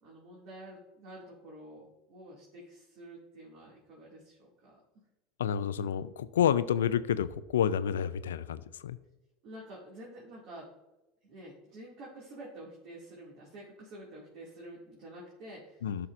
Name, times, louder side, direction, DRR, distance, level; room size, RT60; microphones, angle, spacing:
voice 1, 0.0-4.8 9.4-10.7 11.2-15.9, right 1 dB, 60° right, -5 dB, 2.3 m, -49 dB
voice 2, 5.4-9.0 15.8-16.1, left 9 dB, 90° left, 15 dB, 0.4 m, -29 dB
11.0 x 5.8 x 2.6 m, 1.0 s
hypercardioid pair, 90°, 0 cm